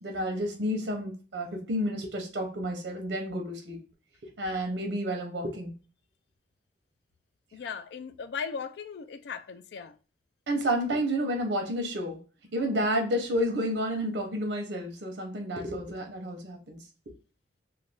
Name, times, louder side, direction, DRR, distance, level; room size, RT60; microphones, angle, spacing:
voice 1, 0.0-3.8 4.4-5.7 10.5-12.2 12.5-16.8, equal, 85° right, 0.7 m, -30 dB
voice 2, 7.5-10.0, left 6 dB, 65° left, 0.3 m, -37 dB
2.5 x 2.3 x 3.3 m
head